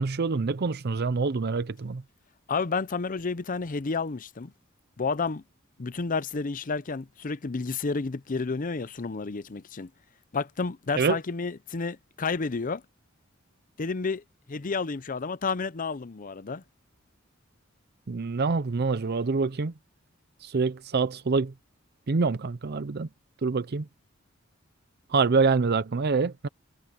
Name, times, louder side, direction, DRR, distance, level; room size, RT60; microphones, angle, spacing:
voice 1, 0.0-2.0 11.0-11.2 18.1-19.7 20.4-21.5 22.1-23.1 23.4-23.9 25.1-26.5, right 4 dB, 55° right, 0.6 m, -26 dB
voice 2, 2.5-4.5 5.0-5.4 5.8-9.9 10.3-12.8 13.8-16.6, left 4 dB, 45° left, 0.6 m, -31 dB
head